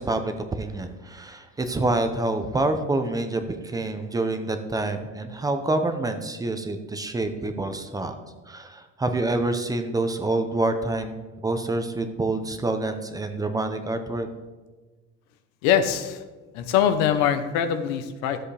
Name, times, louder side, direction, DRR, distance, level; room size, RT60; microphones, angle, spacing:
voice 1, 0.0-8.1 8.5-14.3, right 2 dB, 10° right, 7 dB, 0.6 m, -27 dB
voice 2, 15.6-16.2 16.5-18.4, left 9 dB, 85° left, 9 dB, 1.0 m, -23 dB
13.5 x 7.7 x 3.3 m, 1.3 s
cardioid pair, 145°, 30 cm